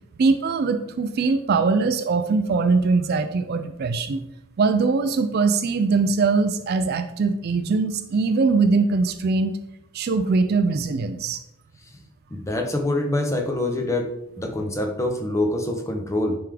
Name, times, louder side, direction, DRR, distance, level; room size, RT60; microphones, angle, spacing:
voice 1, 0.2-4.2 4.6-9.5 9.9-11.4, right 4 dB, 45° right, 10 dB, 0.3 m, -21 dB
voice 2, 12.3-14.1 14.4-16.4, left 1 dB, 15° left, 3 dB, 0.6 m, -25 dB
9.1 x 3.5 x 3.4 m, 0.85 s
head